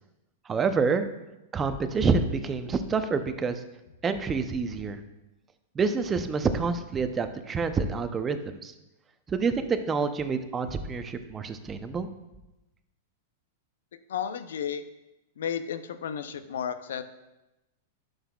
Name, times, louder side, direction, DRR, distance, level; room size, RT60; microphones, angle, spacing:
voice 1, 0.5-1.1 1.5-3.6 4.0-5.0 5.7-8.4 8.6-8.7 9.3-12.1, right 5 dB, 20° right, 9 dB, 0.6 m, -27 dB
voice 2, 13.9-14.8 15.4-17.0, left 8 dB, 75° left, 11 dB, 0.5 m, -33 dB
11.0 x 6.5 x 2.4 m, 0.98 s
hypercardioid pair, 115°, 0 cm